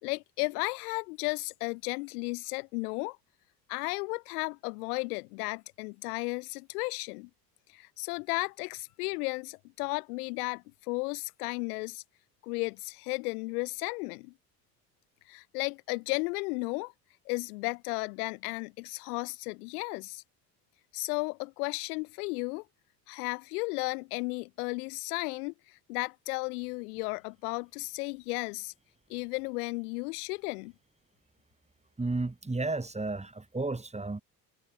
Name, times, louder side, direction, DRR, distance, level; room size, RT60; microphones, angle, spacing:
voice 1, 0.0-3.2 3.7-7.3 7.7-12.0 12.4-14.3 15.3-16.9 17.3-20.2 20.9-22.6 23.1-28.7 29.1-30.7, left 27 dB, 60° left, 2.8 m, -34 dB
voice 2, 32.0-34.2, right 3 dB, 15° right, 6.1 m, -32 dB
figure-of-eight pair, 60°, 49 cm